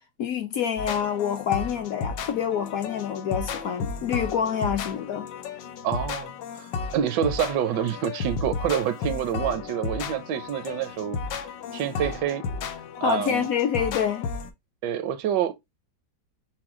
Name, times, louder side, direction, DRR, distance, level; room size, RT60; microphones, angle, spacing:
voice 1, 0.2-5.3 13.0-14.3, left 8 dB, 65° left, 0.9 m, -27 dB
sound 1, 0.8-14.5, left 5 dB, 90° left, 1.4 m, -33 dB
voice 2, 5.8-11.2 11.7-12.4 13.0-13.5 14.8-15.5, right 10 dB, 75° right, 1.2 m, -27 dB
6.0 x 2.2 x 3.6 m
omnidirectional pair, 1.9 m